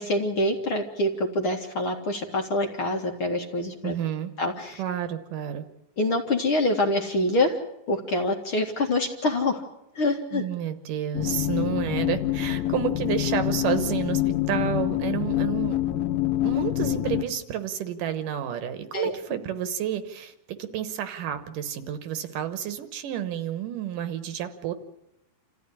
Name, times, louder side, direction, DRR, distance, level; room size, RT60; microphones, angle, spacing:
voice 1, 0.0-3.9 4.4-4.8 6.0-7.6 7.9-9.6 9.9-10.4 18.9-19.1, left 1 dB, 45° left, 2 dB, 2.2 m, -25 dB
voice 2, 3.8-4.3 4.8-5.7 10.3-15.8 16.4-24.7, right 10 dB, 70° right, 10 dB, 2.6 m, -30 dB
sound 1, 11.1-17.2, left 14 dB, 75° left, 2.8 m, -26 dB
28.0 x 14.5 x 10.0 m, 0.85 s
omnidirectional pair, 4.2 m